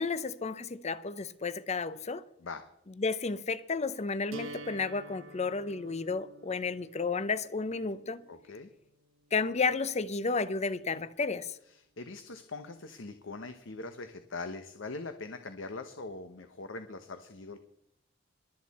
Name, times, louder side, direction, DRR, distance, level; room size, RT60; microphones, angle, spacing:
voice 1, 0.0-2.2 3.0-8.2 9.3-11.5, left 4 dB, 35° left, 0.6 m, -32 dB
sound 1, 4.3-10.3, right 1 dB, 80° right, 1.4 m, -50 dB
voice 2, 8.3-8.7 11.6-17.6, left 3 dB, 70° left, 1.0 m, -42 dB
22.0 x 8.4 x 4.2 m
head